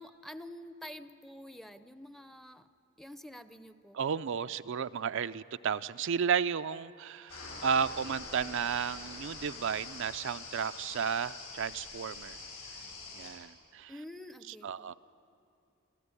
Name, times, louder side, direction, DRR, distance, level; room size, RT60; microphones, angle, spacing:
voice 1, 0.0-2.7 3.0-4.0 13.9-14.9, left 1 dB, ahead, 11 dB, 0.6 m, -48 dB
voice 2, 3.9-12.4 13.1-13.9 14.6-14.9, right 7 dB, 65° right, 11 dB, 0.4 m, -33 dB
sound 1, 7.3-13.3, left 3 dB, 85° left, 7.9 m, -45 dB
27.5 x 13.0 x 9.7 m, 2.7 s
head